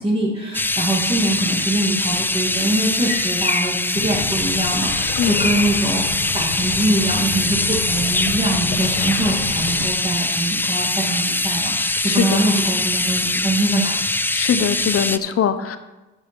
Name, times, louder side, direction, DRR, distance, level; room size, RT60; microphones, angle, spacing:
voice 1, 0.0-14.0, right 1 dB, 20° right, -4 dB, 2.5 m, -23 dB
sound 1, 0.5-15.2, left 2 dB, 5° left, 0.4 m, -22 dB
sound 2, 3.9-9.9, left 6 dB, 80° left, 1.4 m, -30 dB
voice 2, 12.0-12.5 14.3-15.8, left 8 dB, 45° left, 11 dB, 1.0 m, -21 dB
8.9 x 7.5 x 5.4 m, 1.1 s
supercardioid pair, 80°, 31 cm